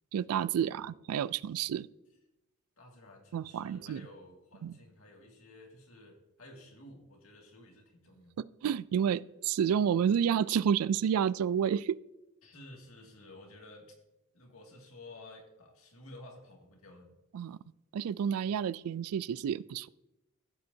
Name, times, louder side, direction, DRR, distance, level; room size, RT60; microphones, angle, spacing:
voice 1, 0.1-1.9 3.3-4.0 4.6-4.8 8.6-12.0 17.3-17.6 17.9-19.9, right 8 dB, 90° right, 20 dB, 0.3 m, -30 dB
voice 2, 2.8-8.3 12.4-14.0 14.3-17.1, left 2 dB, 80° left, 1 dB, 2.2 m, -53 dB
14.5 x 7.8 x 2.7 m, 0.94 s
head